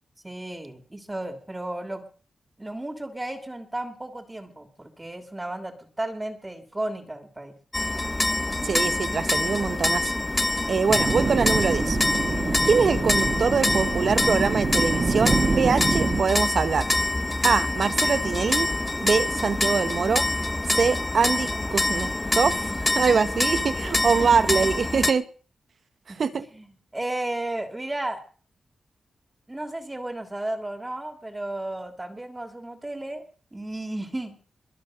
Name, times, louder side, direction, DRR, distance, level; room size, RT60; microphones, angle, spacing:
voice 1, 0.2-2.0 2.6-7.5 24.2-24.4 26.1-26.2 26.5-26.7 26.9-28.2 29.5-33.2 33.5-34.3, right 1 dB, 20° right, 7 dB, 2.9 m, -33 dB
sound 1, 7.7-25.1, left 2 dB, 20° left, 1.1 m, -26 dB
voice 2, 8.6-10.1 10.7-12.0 12.6-16.9 17.4-18.7 19.0-20.3 20.6-25.2 26.2-26.5, right 5 dB, 65° right, 13 dB, 1.4 m, -24 dB
sound 2, 10.9-16.2, right 3 dB, 50° right, 2.7 m, -26 dB
22.0 x 7.5 x 6.4 m, 0.41 s
cardioid pair, 60°, 0 cm